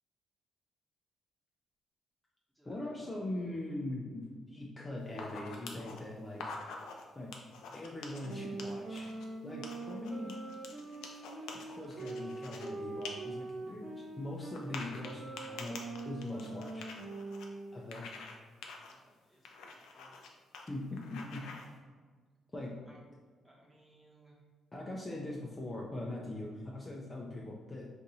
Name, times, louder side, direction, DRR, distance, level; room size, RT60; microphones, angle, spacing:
voice 1, 2.6-6.5 7.1-7.3 7.7-9.1 9.4-10.3 11.7-15.8 16.0-16.9 17.7-18.2 20.7-21.4 22.5-22.7 24.7-27.9, left 1 dB, 20° left, -3 dB, 0.5 m, -41 dB
sound 1, 5.1-6.0 6.3-7.0 7.3-9.2 9.6-12.7 13.0-13.1 13.5-13.6 14.6-17.5 17.9-18.4 18.6-18.9 19.5-20.3 20.5-20.7 21.0-21.7, left 4 dB, 85° left, 0.4 m, -46 dB
sound 2, 8.2-17.9, right 3 dB, 40° right, 0.5 m, -43 dB
voice 2, 18.9-19.5 19.9-20.1 22.9-23.0 23.4-24.4, right 2 dB, 10° right, -5 dB, 1.1 m, -63 dB
2.6 x 2.5 x 4.0 m, 1.5 s
cardioid pair, 90°, 0 cm